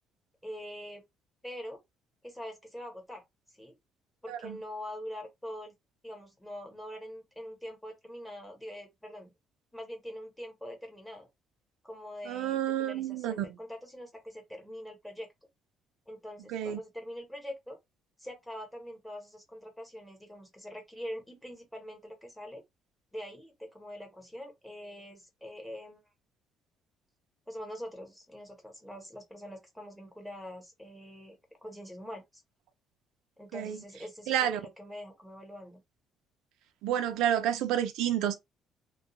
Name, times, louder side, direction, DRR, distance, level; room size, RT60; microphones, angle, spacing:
voice 1, 0.4-1.0 1.4-1.8 2.2-3.2 3.6-3.8 4.2-5.7 6.0-9.3 9.7-11.3 11.8-15.3 16.1-17.8 18.2-22.6 23.1-26.0 27.5-31.4 31.6-32.4 33.4-35.8, equal, 5° left, 0.9 m, -44 dB
voice 2, 12.3-13.5 16.5-16.8 33.5-33.8 34.3-34.6 36.8-38.3, right 10 dB, 90° right, 0.5 m, -29 dB
2.3 x 2.2 x 2.9 m
cardioid pair, 155°, 0 cm